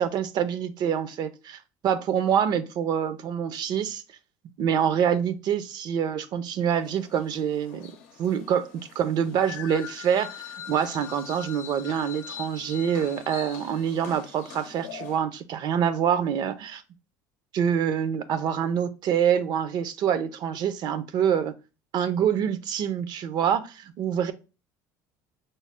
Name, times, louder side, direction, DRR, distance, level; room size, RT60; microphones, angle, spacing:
voice 1, 0.0-4.0 4.6-16.8 17.5-21.5 21.9-24.3, right 8 dB, 55° right, 0.5 m, -26 dB
sound 1, 6.7-15.2, left 9 dB, 80° left, 0.6 m, -43 dB
5.3 x 2.0 x 3.5 m
supercardioid pair, 90°, 9 cm